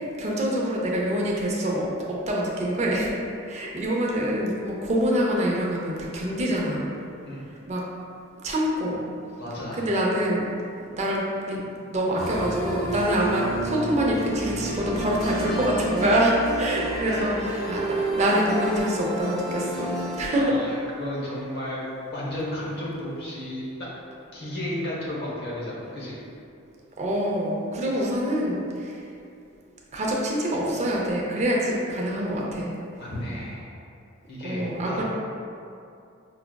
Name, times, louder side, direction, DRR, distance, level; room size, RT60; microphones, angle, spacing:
voice 1, 0.2-3.1 3.5-6.9 7.7-7.8 8.4-9.0 9.7-10.5 10.9-11.6 11.9-17.3 17.7-20.8 27.0-29.0 29.9-32.8 34.4-35.0, equal, 35° right, -3 dB, 0.5 m, -25 dB
voice 2, 9.4-9.9 17.0-17.3 19.6-19.8 20.3-21.8 22.1-23.6 24.3-26.2 33.0-33.8 34.3-35.0, left 1 dB, 55° left, -6 dB, 0.9 m, -33 dB
sound 1, 12.2-20.3, right 1 dB, ahead, 0.7 m, -30 dB
4.7 x 2.3 x 2.2 m, 2.5 s
head